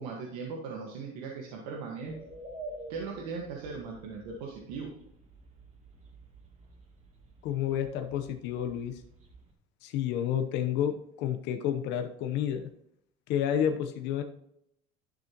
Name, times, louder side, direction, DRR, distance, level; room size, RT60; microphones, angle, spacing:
voice 1, 0.0-2.2 2.9-4.9, right 4 dB, 90° right, -1 dB, 1.6 m, -38 dB
sound 1, 2.0-9.5, right 2 dB, 35° right, 2.5 m, -49 dB
voice 2, 7.4-8.9 9.8-10.9 11.2-12.7 13.3-14.2, left 9 dB, 65° left, 6 dB, 0.9 m, -30 dB
11.5 x 6.5 x 3.0 m, 0.76 s
cardioid pair, 120°, 20 cm